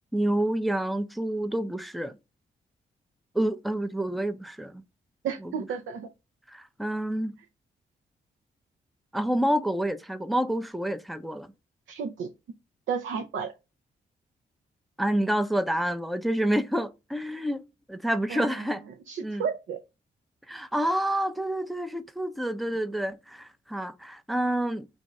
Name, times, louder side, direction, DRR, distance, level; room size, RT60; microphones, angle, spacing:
voice 1, 0.1-2.1 3.3-4.7 5.4-5.5 6.5-7.4 9.1-11.5 15.0-17.6 17.9-18.8 19.2-19.4 20.5-24.9, right 1 dB, ahead, 0.5 m, -28 dB
voice 2, 5.2-6.1 11.9-12.3 12.9-13.5 18.3-18.7 19.1-19.8, right 6 dB, 65° right, 0.5 m, -32 dB
3.5 x 2.6 x 3.1 m
hypercardioid pair, 40°, 21 cm